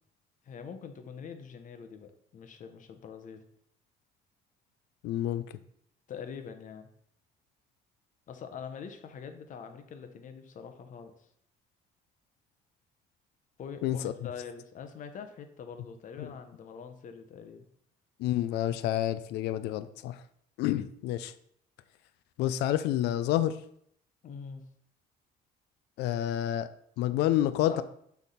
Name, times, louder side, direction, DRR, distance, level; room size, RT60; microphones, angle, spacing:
voice 1, 0.4-3.4 6.1-6.9 8.3-11.3 13.6-17.6 24.2-24.6 27.7-27.8, left 6 dB, 50° left, 7 dB, 0.9 m, -44 dB
voice 2, 5.0-5.4 13.8-14.1 16.2-16.3 18.2-20.2 20.6-21.3 22.4-23.6 26.0-26.7 27.0-27.8, left 12 dB, 85° left, 14 dB, 0.5 m, -29 dB
6.2 x 3.5 x 5.7 m, 0.68 s
cardioid pair, 110°, 17 cm